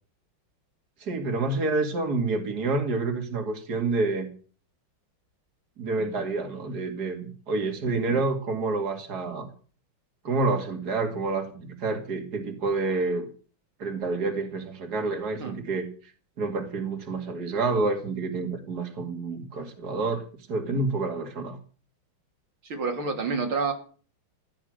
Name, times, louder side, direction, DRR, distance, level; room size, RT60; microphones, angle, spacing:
voice 1, 1.0-4.3 5.8-9.5 10.2-13.3 13.8-15.9 16.4-21.6, right 3 dB, 50° right, 4 dB, 2.8 m, -28 dB
voice 2, 22.6-23.7, right 4 dB, 85° right, 2 dB, 3.7 m, -28 dB
15.5 x 10.5 x 6.5 m, 0.41 s
omnidirectional pair, 2.2 m